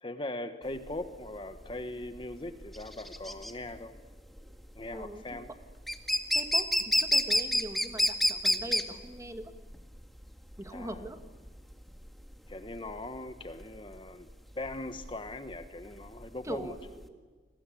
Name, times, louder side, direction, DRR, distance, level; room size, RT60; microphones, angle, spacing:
voice 1, 0.0-3.9 4.7-5.5 10.7-11.1 12.5-16.8, left 2 dB, 30° left, 9 dB, 1.2 m, -40 dB
sound 1, 0.7-17.1, equal, ahead, 1.9 m, -30 dB
voice 2, 6.3-6.7 7.0-9.5 10.6-11.2 16.4-17.2, right 1 dB, 15° right, 7 dB, 2.0 m, -41 dB
30.0 x 22.5 x 8.5 m, 1.5 s
head